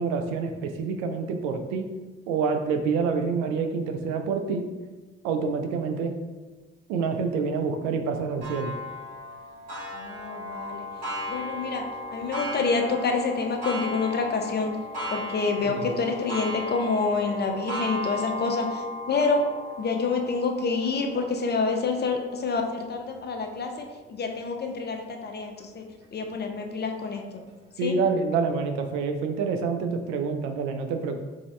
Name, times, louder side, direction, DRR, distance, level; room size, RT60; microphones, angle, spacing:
voice 1, 0.0-1.9 2.3-4.6 5.2-6.1 6.9-8.7 15.6-16.0 27.8-31.2, right 5 dB, 70° right, 6 dB, 0.5 m, -27 dB
Clock, 8.4-23.7 24.3-24.4 24.9-25.0 26.0-26.1, left 1 dB, 90° right, 1.3 m, -36 dB
voice 2, 9.9-10.9 11.3-11.8 12.1-14.7 15.1-19.4 19.8-25.8 26.1-27.4 27.8-28.0, left 4 dB, 30° left, 4 dB, 0.7 m, -27 dB
3.6 x 3.5 x 3.2 m, 1.2 s
hypercardioid pair, 45°, 31 cm